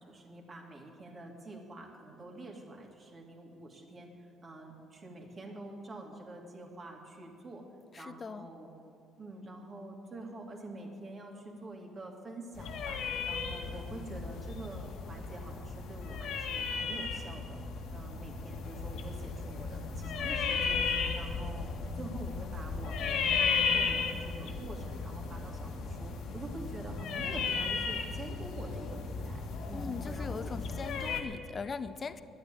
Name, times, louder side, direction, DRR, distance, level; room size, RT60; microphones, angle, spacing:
voice 1, 0.0-4.1 4.4-7.6 8.0-8.7 9.2-13.0 13.3-17.6 17.9-21.7 21.9-30.9, right 2 dB, 40° right, 0 dB, 2.6 m, -46 dB
voice 2, 7.9-8.5 29.7-32.2, left 5 dB, 35° left, 12 dB, 0.6 m, -40 dB
sound 1, 12.6-31.2, left 5 dB, 75° left, 1.5 m, -35 dB
11.0 x 9.3 x 9.0 m, 2.5 s
cardioid pair, 85°, 0 cm